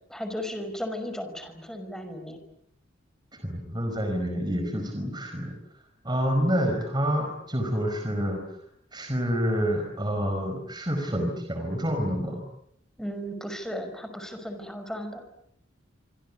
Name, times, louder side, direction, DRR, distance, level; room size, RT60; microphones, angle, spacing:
voice 1, 0.1-2.4 13.0-15.2, equal, 5° left, 8 dB, 5.2 m, -35 dB
voice 2, 3.4-5.5 6.0-8.4 8.9-12.4, equal, 20° right, 5 dB, 4.8 m, -28 dB
26.0 x 25.5 x 8.5 m, 0.73 s
head